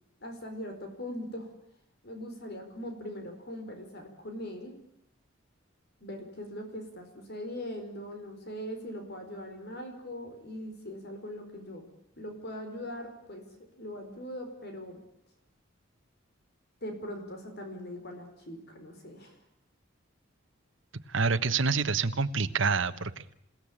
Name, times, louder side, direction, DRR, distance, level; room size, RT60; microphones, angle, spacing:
voice 1, 0.2-1.5 2.0-4.7 6.0-11.8 12.2-13.4 13.7-15.0 16.8-19.4, equal, 55° left, 5 dB, 4.7 m, -41 dB
voice 2, 21.1-23.1, right 4 dB, 70° right, 9 dB, 1.3 m, -27 dB
28.0 x 17.0 x 8.7 m, 0.77 s
head